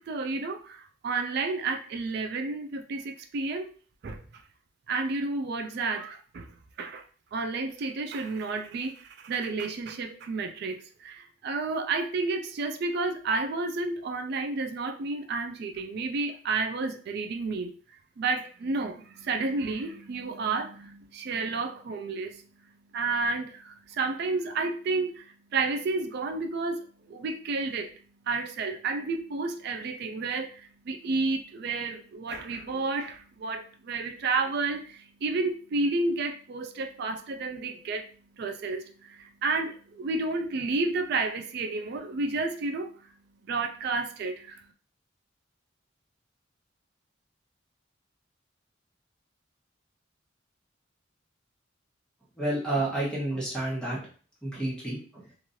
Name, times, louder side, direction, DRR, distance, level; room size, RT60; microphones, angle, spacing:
voice 1, 0.0-3.7 4.0-4.2 4.9-6.5 6.8-7.0 7.3-17.7 18.2-27.9 28.2-43.1 43.4-44.7, right 3 dB, 55° right, 0.3 m, -31 dB
voice 2, 52.4-54.1 54.4-55.2, right 1 dB, 5° left, 1.2 m, -30 dB
3.0 x 2.5 x 2.7 m
head